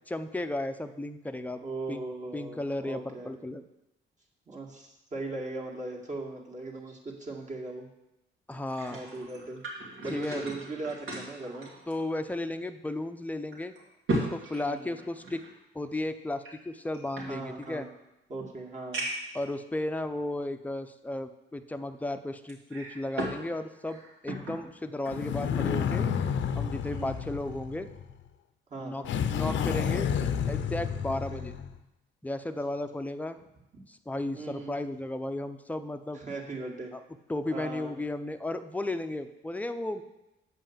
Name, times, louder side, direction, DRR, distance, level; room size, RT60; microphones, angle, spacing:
voice 1, 0.1-1.6 1.9-2.0 2.3-3.6 8.5-9.0 10.1-10.4 11.9-13.7 14.2-15.4 15.7-17.9 19.3-26.1 26.5-27.9 28.8-29.0 29.3-30.1 30.5-31.5 32.2-33.4 33.9-36.2 36.9-37.0 37.3-40.0, left 1 dB, 10° left, 8 dB, 0.6 m, -34 dB
voice 2, 1.6-3.3 4.5-7.9 8.9-9.6 10.0-11.7 14.6-14.9 17.3-17.9 18.3-19.0 26.9-27.2 28.7-29.1 31.1-31.4 34.3-34.7 36.1-36.9 37.5-38.0, right 2 dB, 35° right, -1 dB, 2.1 m, -39 dB
sound 1, 8.5-12.5 12.9-13.0 13.5-15.5 16.4-17.8 18.4-18.5 18.9-19.4 20.1-20.2 22.5-23.4 23.8-24.6 25.1-25.3, right 1 dB, 80° right, 2.5 m, -36 dB
sound 2, 25.1-28.1 29.0-31.8, left 7 dB, 70° left, 0.7 m, -30 dB
8.2 x 5.5 x 7.3 m, 0.92 s
cardioid pair, 90°, 20 cm